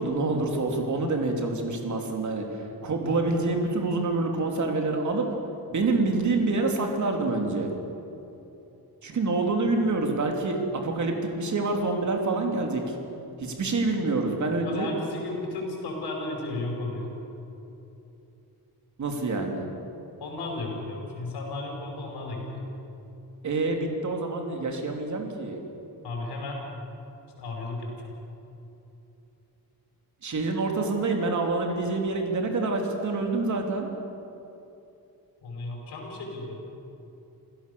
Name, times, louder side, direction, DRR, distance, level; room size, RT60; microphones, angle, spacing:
voice 1, 0.0-5.3 5.7-7.7 9.0-13.0 13.4-14.9 19.0-19.7 23.4-25.6 30.2-33.9, right 3 dB, 50° right, 2 dB, 3.2 m, -27 dB
voice 2, 14.7-17.1 20.2-22.6 26.0-26.7 27.4-28.1 35.4-36.6, left 2 dB, 85° left, 0 dB, 5.6 m, -34 dB
27.5 x 16.0 x 7.0 m, 2.9 s
wide cardioid pair, 145°, 39 cm